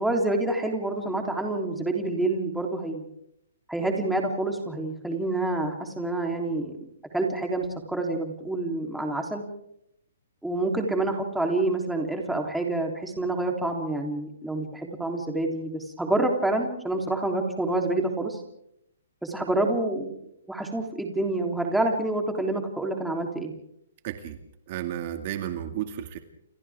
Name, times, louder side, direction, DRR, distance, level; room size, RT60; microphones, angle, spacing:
voice 1, 0.0-3.1 3.7-6.7 7.1-9.5 10.4-18.4 19.2-20.2 20.5-23.5, right 2 dB, 5° right, 2 dB, 3.5 m, -27 dB
voice 2, 24.0-24.4 24.7-26.2, right 11 dB, 40° right, 6 dB, 2.2 m, -32 dB
29.5 x 27.5 x 3.7 m, 0.76 s
hypercardioid pair, 155°, 0 cm